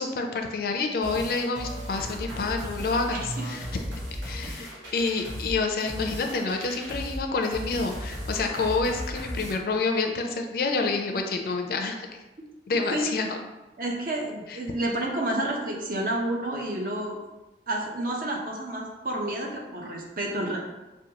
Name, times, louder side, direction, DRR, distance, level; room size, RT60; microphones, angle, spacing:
voice 1, 0.0-3.7 4.1-12.1 12.7-13.4 14.5-14.6, left 3 dB, 55° left, 4 dB, 0.4 m, -28 dB
sound 1, 1.0-9.5, equal, 90° right, 1.0 m, -36 dB
voice 2, 3.1-3.4 12.9-13.3 13.8-17.2 17.7-20.6, right 1 dB, 50° right, -1 dB, 0.7 m, -30 dB
5.1 x 2.2 x 2.8 m, 1.1 s
head